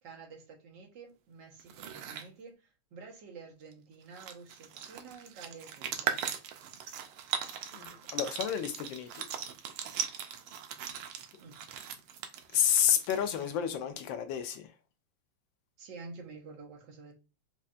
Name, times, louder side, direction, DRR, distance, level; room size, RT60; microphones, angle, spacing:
voice 1, 0.0-6.2 11.4-11.5 15.8-17.1, right 4 dB, 65° right, 1.5 m, -49 dB
sound 1, 1.6-2.3 3.7-3.8 4.0-13.6, right 8 dB, 90° right, 1.5 m, -39 dB
voice 2, 7.7-9.1 12.5-14.7, left 9 dB, 75° left, 1.2 m, -30 dB
5.4 x 2.4 x 2.4 m
omnidirectional pair, 2.3 m